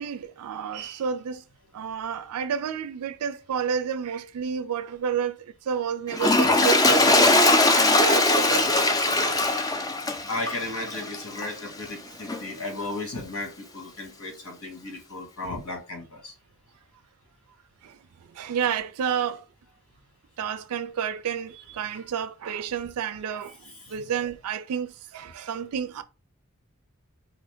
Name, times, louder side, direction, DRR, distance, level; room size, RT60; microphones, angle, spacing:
voice 1, 0.0-1.4 1.7-9.4 17.8-18.0 18.3-19.4 20.4-26.0, right 8 dB, 90° right, 0.4 m, -30 dB
Toilet flush, 6.1-11.6 12.3-12.4, left 2 dB, 15° left, 0.4 m, -21 dB
voice 2, 10.3-16.3 21.9-22.0 23.6-24.1, left 2 dB, 85° left, 1.7 m, -35 dB
4.7 x 2.6 x 3.5 m
head